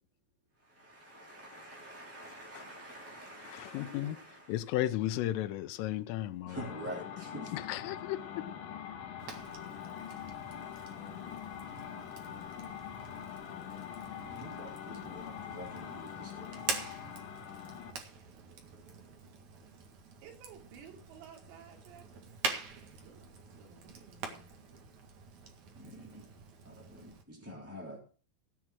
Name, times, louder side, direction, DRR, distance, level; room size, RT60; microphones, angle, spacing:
voice 1, 0.6-4.5 6.5-7.6 14.2-16.7 25.7-26.3 26.6-28.0, right 1 dB, 5° right, 1.9 m, -47 dB
voice 2, 3.4-4.2 4.5-6.8 7.5-8.5, left 14 dB, 80° left, 3.3 m, -35 dB
sound 1, 6.5-18.0, left 9 dB, 65° left, 2.2 m, -44 dB
Fire, 9.2-27.2, right 5 dB, 55° right, 2.2 m, -45 dB
voice 3, 20.1-22.1 23.0-24.5, right 7 dB, 85° right, 5.6 m, -54 dB
17.0 x 6.1 x 6.1 m
omnidirectional pair, 6.0 m